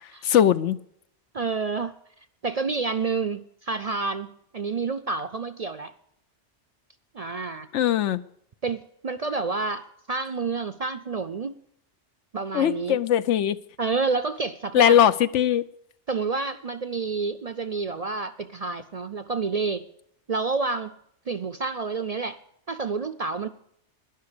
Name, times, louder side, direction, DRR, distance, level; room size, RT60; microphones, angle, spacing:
voice 1, 0.2-0.8 7.7-8.2 12.5-13.6 14.7-15.6, left 10 dB, 80° left, 1.0 m, -20 dB
voice 2, 1.3-1.9 2.4-5.9 7.1-7.7 8.6-11.6 12.3-13.0 13.8-15.0 16.1-19.9 20.3-20.9 21.3-22.4 22.7-23.5, right 4 dB, 45° right, 0.5 m, -29 dB
12.5 x 10.5 x 6.7 m
omnidirectional pair, 1.2 m